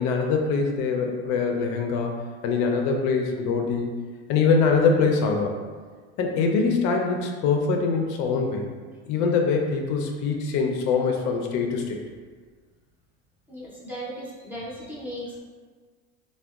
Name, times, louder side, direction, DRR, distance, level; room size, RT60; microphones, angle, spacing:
voice 1, 0.0-2.1 2.4-4.0 4.3-5.6 6.2-8.6 9.1-12.0, left 4 dB, 70° left, 2 dB, 0.4 m, -23 dB
voice 2, 13.5-15.4, equal, 5° right, -8 dB, 0.6 m, -36 dB
3.5 x 2.2 x 2.3 m, 1.5 s
cardioid pair, 135°, 30 cm